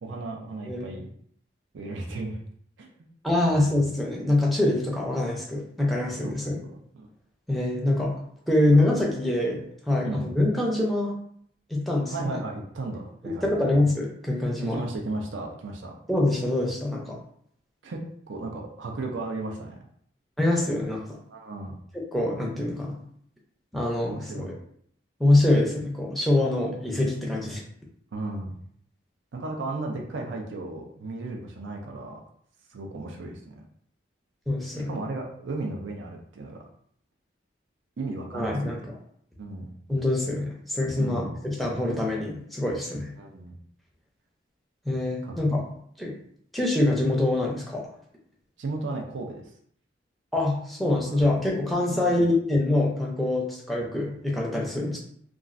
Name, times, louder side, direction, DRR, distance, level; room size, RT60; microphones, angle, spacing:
voice 1, 0.0-1.1 1.7-2.5 2.8-3.1 3.4-3.7 6.2-7.1 8.7-8.8 10.0-10.3 12.1-13.8 14.6-15.9 17.8-19.8 21.3-21.8 24.0-24.5 28.1-28.6 29.3-32.2 32.7-33.6 34.9-36.6 38.0-38.7 39.4-39.8 41.0-41.3 42.2-42.3 43.2-43.6 45.2-45.3 48.6-49.5 51.1-51.2 51.9-52.3, right 2 dB, 80° right, 1 dB, 0.5 m, -35 dB
voice 2, 3.2-6.6 7.5-8.2 8.5-11.1 11.7-12.4 13.4-14.8 16.1-17.2 20.4-21.2 21.9-23.0 23.7-24.5 25.2-27.6 34.5-34.9 38.3-38.8 39.9-43.1 44.9-45.6 46.0-46.2 46.5-47.9 50.3-55.0, left 1 dB, ahead, -2 dB, 0.5 m, -25 dB
3.0 x 2.4 x 2.5 m, 0.64 s
head